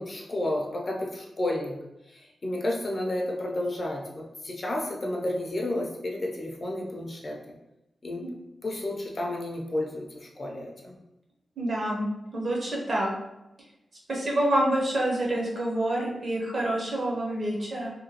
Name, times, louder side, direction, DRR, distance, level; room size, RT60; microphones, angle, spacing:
voice 1, 0.0-1.8 2.1-7.4 8.0-8.2 8.6-10.1 10.4-11.0, left 1 dB, 35° left, 0 dB, 0.4 m, -31 dB
voice 2, 11.6-12.0 12.3-13.1 14.1-17.9, right 1 dB, 45° right, -3 dB, 0.7 m, -27 dB
2.8 x 2.2 x 2.8 m, 0.92 s
wide cardioid pair, 135°, 0 cm